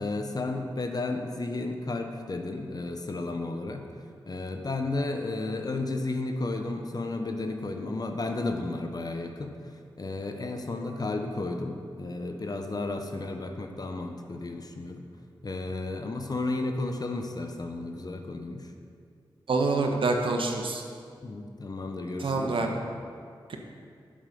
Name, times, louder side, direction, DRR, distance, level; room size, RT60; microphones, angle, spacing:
voice 1, 0.0-3.8 4.3-9.5 10.0-15.0 15.4-18.7 21.2-22.8, left 2 dB, 45° left, 5 dB, 0.9 m, -33 dB
voice 2, 19.5-20.8 22.2-22.7 23.5-23.6, right 3 dB, 75° right, 3 dB, 1.1 m, -26 dB
8.7 x 7.7 x 5.3 m, 2.3 s
cardioid pair, 50°, 9 cm